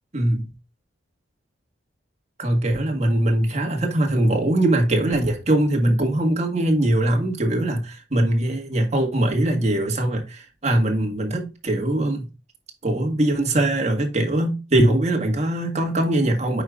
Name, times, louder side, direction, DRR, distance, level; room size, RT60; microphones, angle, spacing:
voice 1, 0.1-0.5 2.4-12.3 12.8-16.6, right 1 dB, 35° right, 1.7 m, -21 dB
8.8 x 5.0 x 2.5 m
head